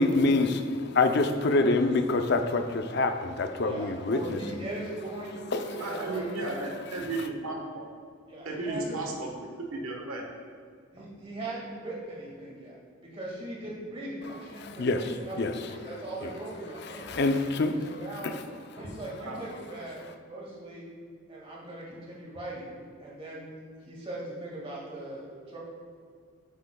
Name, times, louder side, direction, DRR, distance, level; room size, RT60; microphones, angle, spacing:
voice 1, 0.0-4.4 5.5-5.6 14.6-15.5 16.2-16.3 16.9-17.9 18.2-18.4, left 3 dB, 50° left, 7 dB, 0.5 m, -26 dB
voice 2, 3.6-6.7 8.3-9.0 10.9-17.1 17.9-18.3 18.8-20.8 21.3-23.5 23.8-25.6, right 1 dB, 25° right, -5 dB, 1.9 m, -40 dB
voice 3, 5.8-7.8 8.4-9.3 9.6-10.2 19.2-19.4, right 2 dB, 75° right, 0 dB, 1.2 m, -34 dB
9.3 x 8.3 x 2.3 m, 2.1 s
head